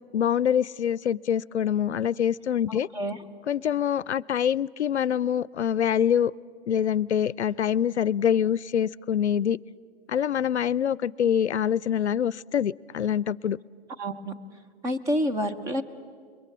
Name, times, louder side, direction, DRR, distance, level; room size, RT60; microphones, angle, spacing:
voice 1, 0.0-2.9 3.5-6.3 6.7-9.6 10.1-13.6, left 9 dB, 90° left, 0.5 m, -25 dB
voice 2, 2.7-3.2 14.0-14.3 14.8-15.8, equal, 10° right, 0.6 m, -28 dB
27.0 x 22.0 x 7.3 m
hypercardioid pair, 135°, 33 cm